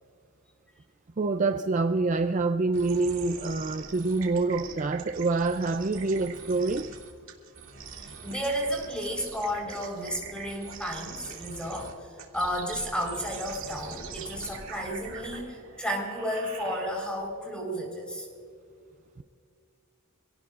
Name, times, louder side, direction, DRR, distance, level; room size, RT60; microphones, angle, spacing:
voice 1, 1.2-6.9, right 3 dB, 35° right, 0.4 m, -26 dB
sound 1, 2.7-17.3, right 5 dB, 70° right, 2.5 m, -43 dB
voice 2, 8.0-12.1 12.3-18.3, equal, 5° left, 4.3 m, -32 dB
26.5 x 18.0 x 2.5 m
head